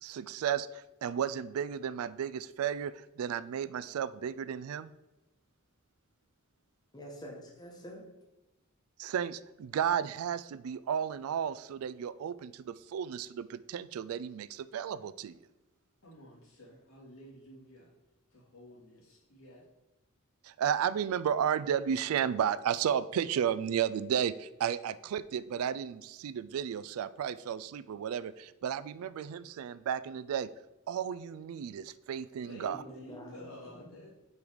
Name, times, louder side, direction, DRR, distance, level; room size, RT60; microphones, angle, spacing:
voice 1, 0.0-4.9 9.0-15.3 20.4-30.5 30.9-32.8, right 8 dB, 80° right, 17 dB, 0.3 m, -33 dB
voice 2, 6.9-8.1 32.8-33.5 33.9-34.1, equal, 20° left, -1 dB, 1.2 m, -47 dB
voice 3, 16.0-17.9 18.3-19.7 32.4-34.1, left 1 dB, 70° left, -4 dB, 2.4 m, -51 dB
5.5 x 5.0 x 4.7 m, 0.98 s
head